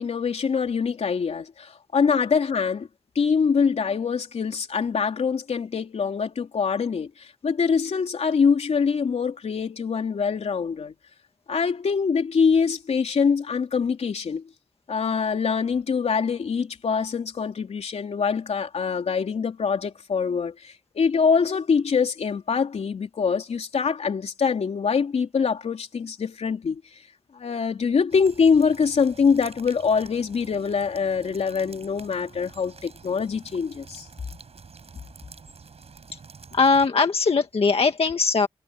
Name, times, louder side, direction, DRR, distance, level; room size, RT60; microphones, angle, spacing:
voice 1, 0.0-2.9 3.2-10.9 11.5-14.4 14.9-26.8 27.3-34.1, left 5 dB, 90° left, 3.6 m, -24 dB
sound 1, 28.1-36.9, right 5 dB, 75° right, 7.3 m, -47 dB
voice 2, 36.5-38.5, left 4 dB, 65° left, 1.8 m, -20 dB
cardioid pair, 65°, 11 cm